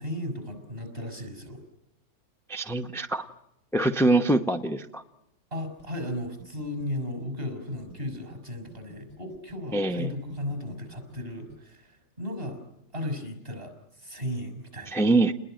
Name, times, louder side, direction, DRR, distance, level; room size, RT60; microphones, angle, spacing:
voice 1, 0.0-1.6 5.5-12.6 12.9-15.0, left 1 dB, 35° right, 9 dB, 6.0 m, -35 dB
voice 2, 2.5-3.3 3.7-5.0 9.7-10.1 14.9-15.3, right 2 dB, ahead, 6 dB, 0.6 m, -24 dB
sound 1, 5.8-8.4 8.7-11.6, right 1 dB, 55° right, 5.6 m, -50 dB
30.0 x 21.0 x 9.1 m, 0.85 s
omnidirectional pair, 1.7 m